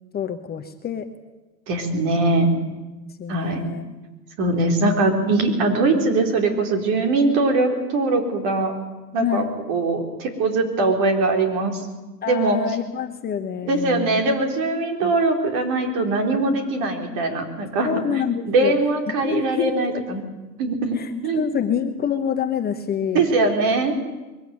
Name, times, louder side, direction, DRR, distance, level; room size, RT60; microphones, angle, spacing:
voice 1, 0.1-1.1 3.2-3.8 4.5-4.9 9.2-9.5 12.2-14.2 15.0-15.1 17.8-18.7 19.1-19.7 21.0-23.3, left 8 dB, 20° left, 6 dB, 1.1 m, -27 dB
voice 2, 1.7-2.5 3.3-3.6 4.4-8.7 9.1-11.8 12.3-12.6 13.7-17.9 18.5-20.2 20.6-21.0 21.2-21.5 23.1-24.0, right 3 dB, 40° right, 4 dB, 4.4 m, -21 dB
22.5 x 14.5 x 9.6 m, 1.2 s
hypercardioid pair, 110°, 49 cm